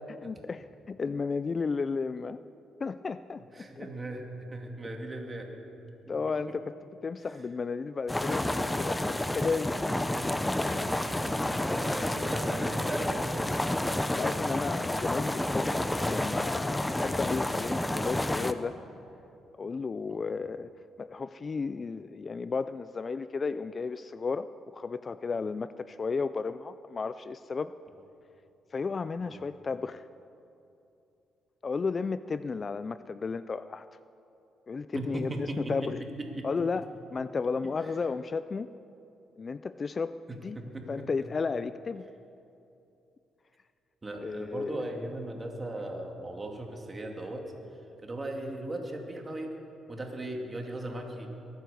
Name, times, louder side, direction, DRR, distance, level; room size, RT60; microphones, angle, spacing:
voice 1, 0.2-2.4 2.8-3.9 6.1-6.7 7.0-9.8 14.2-18.8 19.5-20.7 21.0-27.7 28.7-30.0 31.6-33.9 34.7-36.0 36.4-38.7 39.4-40.1 40.4-40.6 40.9-42.1 44.2-44.8, left 4 dB, 35° left, 13 dB, 0.4 m, -33 dB
voice 2, 3.5-5.6 11.4-13.6 20.1-20.2 29.2-29.4 34.9-36.5 37.8-37.9 40.3-41.1 44.0-47.5 48.0-49.5 49.9-51.3, right 1 dB, 25° right, 2 dB, 2.5 m, -38 dB
sound 1, 8.1-18.5, left 1 dB, 10° left, 0.7 m, -30 dB
22.5 x 9.4 x 6.8 m, 2.8 s
cardioid pair, 90°, 0 cm